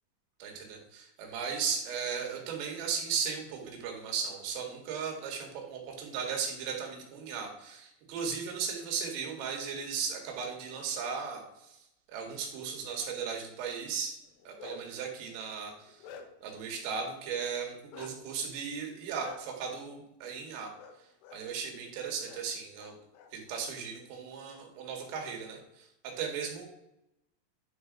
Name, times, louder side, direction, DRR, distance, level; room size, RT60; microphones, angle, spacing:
voice 1, 0.4-14.2 14.5-16.1 16.4-20.7 21.3-23.0 23.3-26.6, right 6 dB, 85° right, 1 dB, 4.2 m, -36 dB
Bark, 14.3-15.0 15.5-16.6 17.9-18.1 19.2-19.4 20.8-21.0 21.2-21.4 22.2-22.4 22.8-23.6, left 6 dB, 80° left, 3.3 m, -49 dB
10.5 x 3.9 x 4.7 m, 0.84 s
omnidirectional pair, 5.7 m